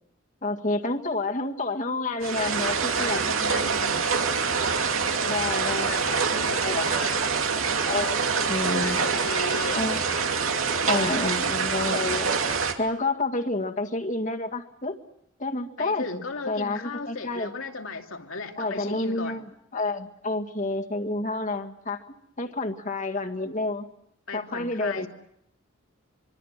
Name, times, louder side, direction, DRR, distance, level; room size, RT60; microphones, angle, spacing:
voice 1, 0.4-3.2 5.3-6.3 6.6-6.9 7.8-8.2 8.5-9.0 9.7-10.0 10.9-12.3 12.8-15.0 15.4-17.5 18.6-19.4 19.7-22.0 22.4-23.8 24.3-25.1, left 2 dB, 40° left, 4 dB, 2.0 m, -29 dB
sound 1, 2.2-12.7, right 5 dB, 85° right, 2.6 m, -25 dB
voice 2, 3.0-4.2 5.3-7.2 8.7-9.9 15.8-19.4 24.3-25.1, left 3 dB, 80° left, 4 dB, 2.7 m, -36 dB
25.0 x 24.5 x 7.5 m, 0.76 s
head